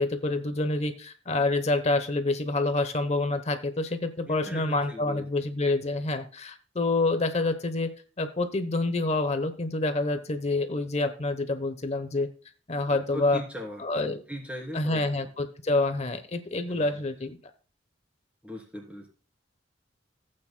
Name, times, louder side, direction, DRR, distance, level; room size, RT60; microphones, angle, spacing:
voice 1, 0.0-7.9 8.2-12.3 12.7-13.4 13.8-14.2 14.7-17.4, left 2 dB, 35° left, 9 dB, 0.9 m, -27 dB
voice 2, 4.3-5.3 13.1-13.8 14.1-15.3 16.7-17.0 18.4-19.1, equal, 5° right, -1 dB, 3.0 m, -39 dB
15.5 x 8.8 x 2.2 m, 0.37 s
head